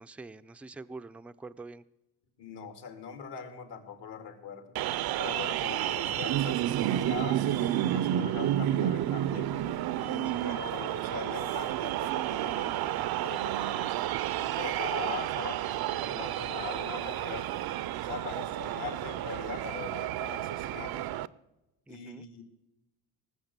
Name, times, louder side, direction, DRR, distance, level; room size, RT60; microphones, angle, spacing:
voice 1, 0.0-1.8 10.3-10.6 21.9-22.2, right 3 dB, 5° right, 10 dB, 0.4 m, -45 dB
voice 2, 2.4-4.8 5.2-7.4 7.8-9.5 10.0-13.9 14.4-17.7 18.0-21.1 21.9-22.4, left 6 dB, 75° left, 7 dB, 2.3 m, -42 dB
sound 1, 4.8-21.3, right 12 dB, 60° right, 0.6 m, -31 dB
19.0 x 7.3 x 6.7 m, 0.96 s
cardioid pair, 90°, 43 cm